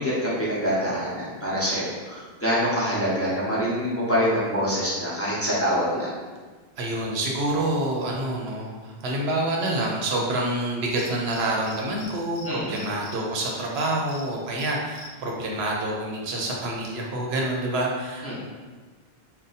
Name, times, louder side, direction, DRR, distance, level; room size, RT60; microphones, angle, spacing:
voice 1, 0.0-6.1 12.4-12.8 18.2-18.4, equal, 15° left, -9 dB, 0.7 m, -25 dB
voice 2, 6.8-18.4, right 1 dB, 80° right, -1 dB, 0.9 m, -27 dB
Cricket, 11.0-12.1 12.4-12.5 12.7-14.2 14.6-15.1, left 4 dB, 80° left, 0.8 m, -42 dB
2.6 x 2.2 x 3.9 m, 1.4 s
omnidirectional pair, 1.0 m